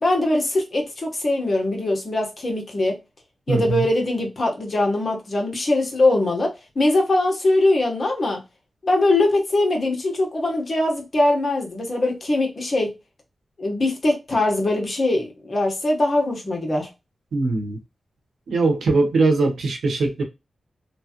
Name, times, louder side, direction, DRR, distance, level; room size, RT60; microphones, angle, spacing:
voice 1, 0.0-2.9 3.5-8.4 8.8-13.0 13.6-16.9, left 2 dB, 45° left, 1.2 m, -21 dB
voice 2, 3.5-3.9 17.3-17.8 18.5-20.2, right 3 dB, 85° right, 0.9 m, -21 dB
3.0 x 2.3 x 2.9 m
cardioid pair, 70°, 0 cm